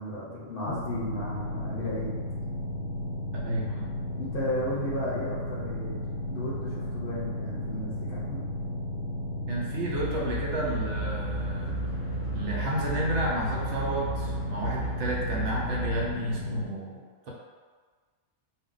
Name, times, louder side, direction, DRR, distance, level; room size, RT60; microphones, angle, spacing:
voice 1, 0.0-2.1 4.2-6.0 6.3-8.4, left 1 dB, 55° left, -7 dB, 0.8 m, -34 dB
sound 1, 0.7-16.7, left 1 dB, 85° left, 1.0 m, -34 dB
voice 2, 3.4-3.9 9.5-11.8 12.3-17.0, right 1 dB, 70° right, -3 dB, 0.8 m, -31 dB
sound 2, 9.9-16.1, right 3 dB, 40° right, 0.3 m, -36 dB
2.3 x 2.0 x 3.8 m, 1.5 s
omnidirectional pair, 1.3 m